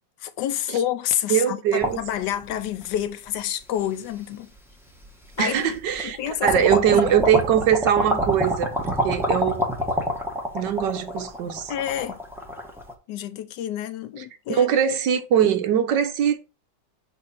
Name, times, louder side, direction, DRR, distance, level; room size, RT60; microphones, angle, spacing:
voice 1, 0.2-4.5 5.4-5.7 6.0-7.1 11.7-12.2 13.1-14.7, left 11 dB, 75° left, 1.2 m, -28 dB
voice 2, 1.3-2.0 5.4-9.6 10.5-11.7 14.2-16.4, right 9 dB, 75° right, 1.5 m, -22 dB
sound 1, 1.8-3.0 3.7-3.8 5.0-5.1 5.5-6.1 6.4-12.9, equal, ahead, 0.8 m, -26 dB
7.6 x 2.7 x 5.8 m
omnidirectional pair, 1.9 m